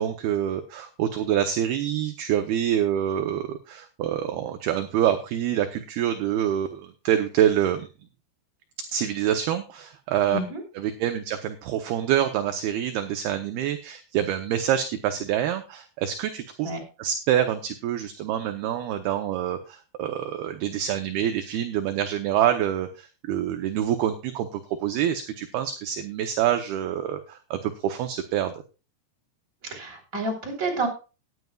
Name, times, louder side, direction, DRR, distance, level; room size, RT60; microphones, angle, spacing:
voice 1, 0.0-7.9 8.9-10.4 10.8-16.7 17.0-28.5, right 10 dB, 75° right, 7 dB, 2.4 m, -26 dB
voice 2, 10.3-10.6 16.6-16.8 29.6-30.9, right 2 dB, 20° right, 1 dB, 3.8 m, -29 dB
18.5 x 9.5 x 2.3 m, 0.31 s
omnidirectional pair, 5.3 m